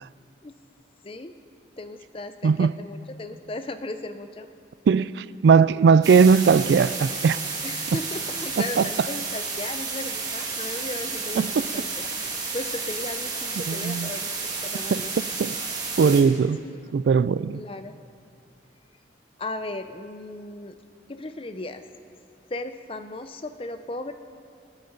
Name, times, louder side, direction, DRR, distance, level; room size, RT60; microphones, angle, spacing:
voice 1, 1.8-4.5 7.6-12.1 12.5-15.1 16.6-16.9 17.5-17.9 19.4-20.8 21.1-21.8 22.5-24.1, left 2 dB, 30° left, 0.6 m, -36 dB
voice 2, 4.9-7.4 8.6-8.9 11.4-11.5 13.7-14.1 14.9-15.6 16.0-16.6 16.9-17.6, right 5 dB, 65° right, 0.3 m, -19 dB
sound 1, 6.0-16.2, right 4 dB, 20° right, 1.7 m, -31 dB
26.5 x 9.4 x 3.9 m
head